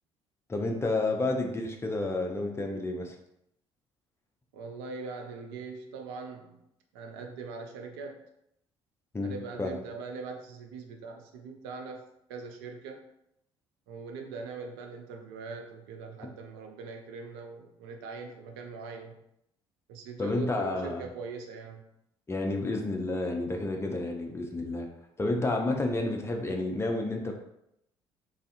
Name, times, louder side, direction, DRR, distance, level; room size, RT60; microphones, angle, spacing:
voice 1, 0.5-3.2 9.1-9.7 20.2-21.1 22.3-24.9 25.2-27.3, left 2 dB, 20° left, 2 dB, 0.5 m, -30 dB
voice 2, 4.5-6.6 6.9-8.2 9.2-12.0 12.3-13.0 13.9-19.2 19.9-21.9, right 4 dB, 70° right, 3 dB, 0.4 m, -41 dB
2.4 x 2.4 x 2.5 m, 0.78 s
figure-of-eight pair, 50°, 14 cm